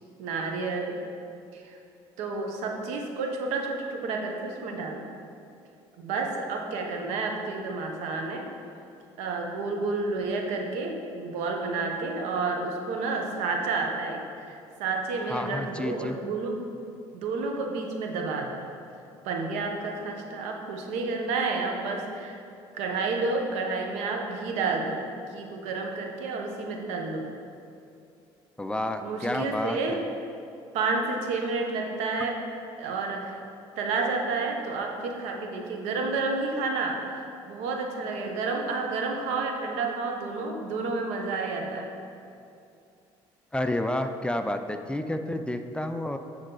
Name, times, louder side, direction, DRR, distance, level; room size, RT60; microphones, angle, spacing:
voice 1, 0.2-1.0 1.5-1.8 2.2-5.0 6.0-8.5 9.2-16.5 17.1-18.6 19.2-22.4 22.7-27.3 29.0-30.1 30.7-32.3 32.8-33.4 33.8-41.9, right 3 dB, 85° right, 2 dB, 1.0 m, -30 dB
voice 2, 15.3-16.2 28.6-30.0 43.5-46.2, left 1 dB, 10° left, 7 dB, 0.4 m, -30 dB
9.1 x 5.6 x 3.9 m, 2.6 s
supercardioid pair, 90°, 11 cm